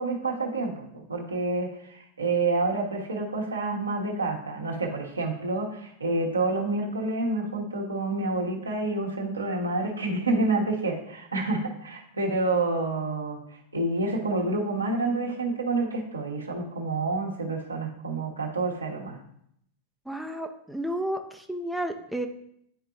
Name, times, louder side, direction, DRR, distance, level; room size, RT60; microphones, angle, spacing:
voice 1, 0.0-13.4 13.7-19.2, right 2 dB, 80° right, -2 dB, 1.2 m, -28 dB
voice 2, 20.1-22.3, right 1 dB, ahead, 5 dB, 0.6 m, -32 dB
9.6 x 4.5 x 2.6 m, 0.72 s
figure-of-eight pair, 90°, 0 cm